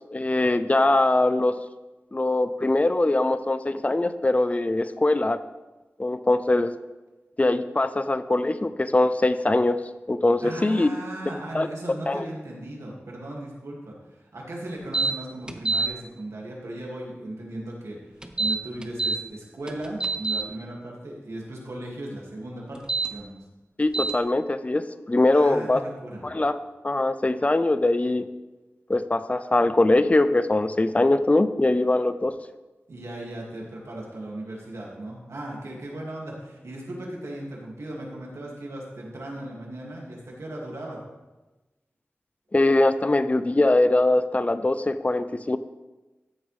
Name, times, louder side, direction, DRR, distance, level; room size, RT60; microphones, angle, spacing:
voice 1, 0.1-1.6 2.1-5.4 6.0-6.7 7.4-9.8 10.1-10.9 11.5-11.7 12.1-12.3 23.8-25.8 26.2-26.5 26.8-28.3 28.9-32.3 42.5-45.6, left 2 dB, 30° left, 12 dB, 0.5 m, -22 dB
voice 2, 10.4-18.0 18.4-22.8 23.1-23.3 25.3-26.2 32.9-41.0, right 1 dB, 85° right, -3 dB, 2.5 m, -37 dB
sound 1, 14.9-15.1 15.5-15.9 18.2-19.2 19.7-20.4 22.7-23.1 23.9-24.1, right 4 dB, 20° right, 0.8 m, -25 dB
13.5 x 7.0 x 3.5 m, 1.1 s
wide cardioid pair, 75°, 5 cm